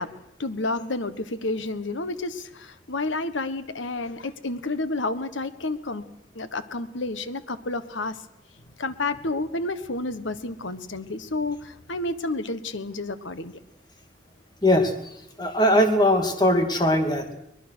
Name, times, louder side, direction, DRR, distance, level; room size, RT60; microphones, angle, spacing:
voice 1, 0.0-6.0 6.3-8.2 8.8-13.6, left 2 dB, 85° left, 12 dB, 1.4 m, -30 dB
voice 2, 14.6-14.9 15.4-17.3, left 1 dB, 20° left, 6 dB, 2.3 m, -20 dB
23.0 x 20.5 x 6.4 m, 0.80 s
head